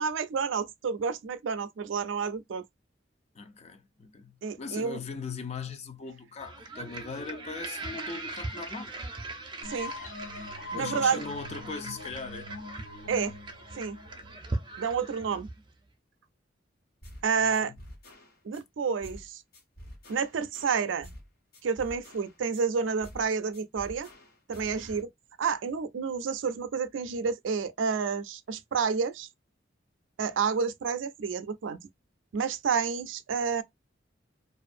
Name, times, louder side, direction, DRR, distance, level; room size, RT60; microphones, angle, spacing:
voice 1, 0.0-2.6 4.4-5.0 9.7-9.9 10.7-11.2 13.1-13.4 13.8-14.0 14.8-15.5 17.2-17.7 18.4-19.4 20.1-21.1 21.6-24.1 24.5-25.1 25.4-29.3 30.2-31.8 32.3-33.6, right 5 dB, 80° right, 0.4 m, -29 dB
voice 2, 3.3-9.0 10.7-12.6 17.4-17.8, left 4 dB, 35° left, 0.4 m, -39 dB
sound 1, 6.4-15.7, right 2 dB, 25° right, 0.5 m, -40 dB
sound 2, 9.6-15.1, left 2 dB, 80° left, 0.9 m, -42 dB
sound 3, 17.0-17.3 17.5-18.6 19.0-19.3 19.5-21.3 21.5-22.6 23.0-23.3 23.5-25.0, equal, 55° left, 1.1 m, -48 dB
2.5 x 2.4 x 2.5 m
head